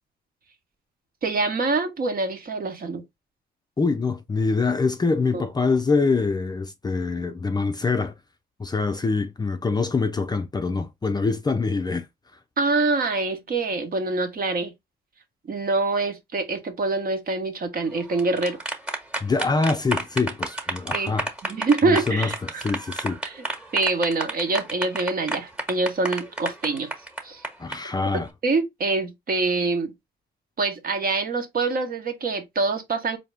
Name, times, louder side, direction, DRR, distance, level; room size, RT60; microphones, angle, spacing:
voice 1, 1.2-3.0 5.3-5.4 12.6-14.7 15.5-18.6 20.9-21.1 21.4-22.7 23.2-23.4 23.7-26.9 27.2-27.4 28.4-29.9 30.6-33.2, right 3 dB, 45° right, 1.1 m, -25 dB
voice 2, 3.8-8.1 8.6-12.1 19.2-21.3 21.8-23.2 27.6-28.3, left 4 dB, 20° left, 0.5 m, -24 dB
sound 1, 18.0-27.8, right 2 dB, 5° right, 1.2 m, -30 dB
4.2 x 2.8 x 3.3 m
cardioid pair, 90°, 20 cm